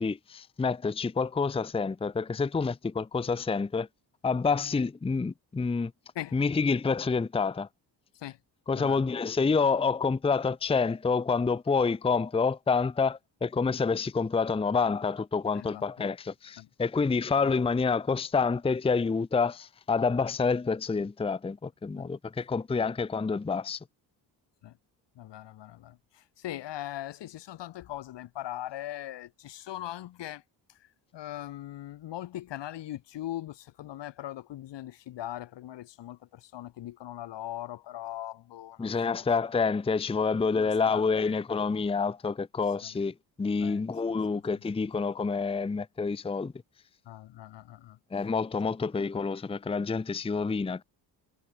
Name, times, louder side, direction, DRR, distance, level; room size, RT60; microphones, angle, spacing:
voice 1, 0.0-3.9 4.2-5.9 6.3-7.7 8.7-23.8 38.8-46.5 48.1-50.8, left 4 dB, 15° left, 0.7 m, -28 dB
voice 2, 15.5-15.8 16.6-16.7 22.0-22.1 24.6-24.7 25.2-30.4 31.1-39.2 40.6-41.3 42.8-42.9 43.6-43.9 47.1-48.0, left 13 dB, 75° left, 2.4 m, -40 dB
cardioid pair, 145°, 43 cm